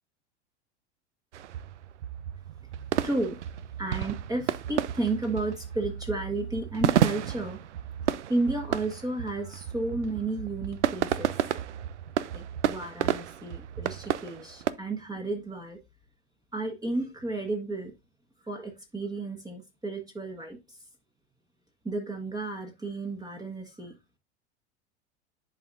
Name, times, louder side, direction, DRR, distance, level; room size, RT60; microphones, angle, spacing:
sound 1, 1.3-14.7, right 11 dB, 90° right, 0.5 m, -31 dB
voice 1, 3.0-3.4 3.8-7.6 8.3-11.3 12.3-15.8 16.5-17.9 18.5-20.8 21.8-23.9, right 2 dB, 10° right, 2 dB, 1.4 m, -32 dB
10.5 x 4.2 x 2.5 m, 0.24 s
hypercardioid pair, 95°, 34 cm